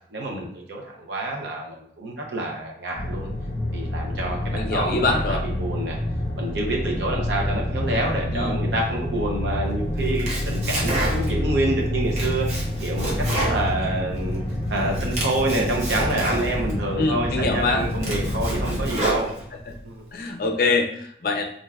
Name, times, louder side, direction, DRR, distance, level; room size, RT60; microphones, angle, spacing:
voice 1, 0.1-3.3 3.7-6.0 6.4-12.5 12.8-14.4 14.7-19.3 19.8-20.0, right 2 dB, 75° right, -1 dB, 0.6 m, -27 dB
sound 1, 2.9-18.9, left 1 dB, 35° left, 0.8 m, -28 dB
voice 2, 4.5-5.4 8.3-8.6 17.0-17.9 20.1-21.4, left 3 dB, 50° left, 3 dB, 0.4 m, -24 dB
Domestic sounds home sounds, 10.0-11.5 11.9-14.4 14.8-16.8 17.3-17.4 17.8-19.7, right 1 dB, 35° right, 0.7 m, -29 dB
3.3 x 2.5 x 2.2 m, 0.67 s
head